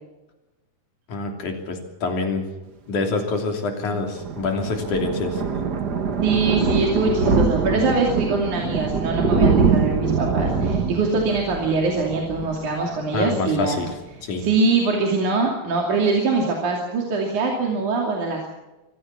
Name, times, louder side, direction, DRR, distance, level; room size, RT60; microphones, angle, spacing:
voice 1, 1.1-2.5 2.9-5.6 13.1-13.9 14.2-14.5, left 3 dB, 75° left, 3 dB, 4.6 m, -26 dB
Thunder, 3.9-13.3 13.6-13.9 14.2-14.3 14.4-14.5, right 4 dB, 40° right, 1.8 m, -23 dB
voice 2, 6.2-13.9 14.4-18.5, right 3 dB, 75° right, 0 dB, 4.2 m, -23 dB
25.0 x 15.5 x 7.4 m, 1.1 s
omnidirectional pair, 3.5 m